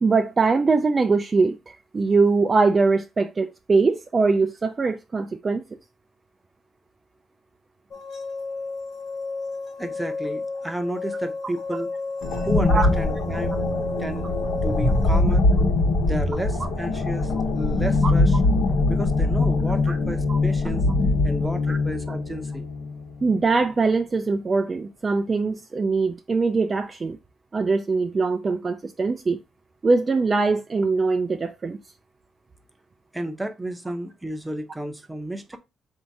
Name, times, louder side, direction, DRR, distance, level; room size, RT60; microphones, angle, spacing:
voice 1, 0.0-5.6 12.7-12.9 18.0-18.1 19.9-20.0 20.3-20.4 21.7-21.8 23.2-27.2 27.5-29.4 29.8-31.8, right 4 dB, 35° right, 0.4 m, -22 dB
sound 1, 7.9-15.2, left 3 dB, 50° left, 1.4 m, -32 dB
voice 2, 9.8-11.9 12.5-13.6 14.0-14.3 14.6-15.5 16.0-18.4 18.9-20.9 21.2-22.7 33.1-35.6, right 1 dB, 10° right, 0.7 m, -32 dB
sound 2, 12.2-23.2, left 2 dB, 85° left, 1.1 m, -22 dB
3.6 x 2.7 x 4.5 m
cardioid pair, 90°, 0 cm